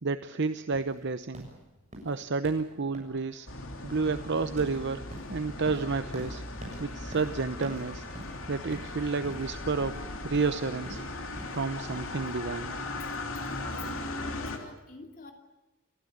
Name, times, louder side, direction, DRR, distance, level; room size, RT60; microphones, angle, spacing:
voice 1, 0.0-1.5 2.0-3.5 3.8-6.4 6.8-8.0 8.5-11.0 11.5-12.8, right 4 dB, 55° right, 11 dB, 0.8 m, -30 dB
sound 1, 0.7-12.1, right 1 dB, 35° right, 7.2 m, -47 dB
sound 2, 2.6-14.0, left 1 dB, 5° left, 6.5 m, -60 dB
sound 3, 3.5-14.6, left 2 dB, 70° left, 3.2 m, -38 dB
voice 2, 13.4-15.3, left 2 dB, 40° left, 3 dB, 2.9 m, -46 dB
28.5 x 15.5 x 9.9 m, 1.1 s
head